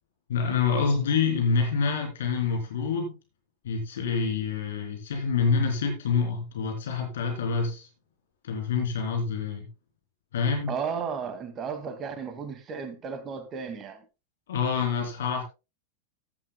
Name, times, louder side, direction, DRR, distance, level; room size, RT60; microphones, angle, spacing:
voice 1, 0.3-3.1 3.6-7.9 8.4-9.7 10.3-10.7 14.5-15.4, left 5 dB, 60° left, 3.2 m, -27 dB
voice 2, 10.7-14.0, right 6 dB, 30° right, 2.1 m, -34 dB
14.5 x 11.0 x 2.2 m
figure-of-eight pair, 90°, 0 cm